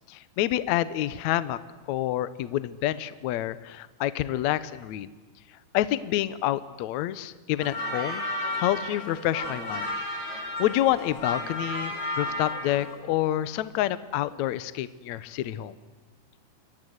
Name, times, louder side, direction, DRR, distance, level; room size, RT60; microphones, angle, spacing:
voice 1, 0.1-1.6 1.9-5.1 5.7-8.3 8.6-9.9 10.3-15.8, left 13 dB, 70° left, 15 dB, 1.7 m, -28 dB
sound 1, 7.6-13.0, left 1 dB, 35° left, 8.2 m, -33 dB
29.0 x 23.0 x 8.1 m, 1.2 s
omnidirectional pair, 4.4 m